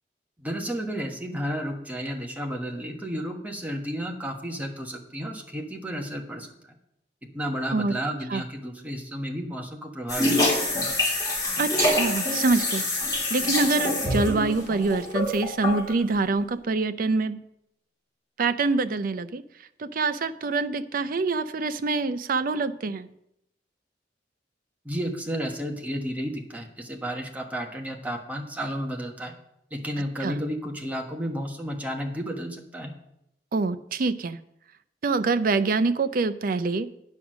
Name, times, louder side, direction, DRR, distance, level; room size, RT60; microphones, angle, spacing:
voice 1, 0.4-6.7 7.2-10.9 24.8-29.3 29.7-32.9, equal, 10° right, 1 dB, 1.3 m, -32 dB
sound 1, 10.1-15.9, left 1 dB, 20° left, 3.0 m, -25 dB
voice 2, 11.6-12.9 13.3-17.4 18.4-19.4 19.8-23.1 30.2-30.4 33.5-34.4 35.0-36.9, right 3 dB, 55° right, 12 dB, 0.5 m, -25 dB
9.7 x 6.1 x 6.1 m, 0.79 s
head